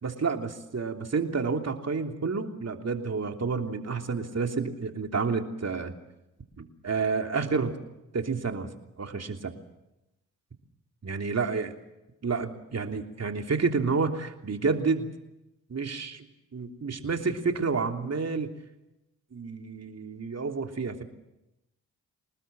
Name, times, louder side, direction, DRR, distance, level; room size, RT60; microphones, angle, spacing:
voice 1, 0.0-5.9 6.6-7.8 8.1-8.7 9.0-9.5 11.0-11.7 12.2-15.1 15.7-18.5 19.3-21.0, right 4 dB, 40° right, 4 dB, 3.1 m, -29 dB
25.0 x 20.0 x 7.6 m, 0.93 s
hypercardioid pair, 40°, 40 cm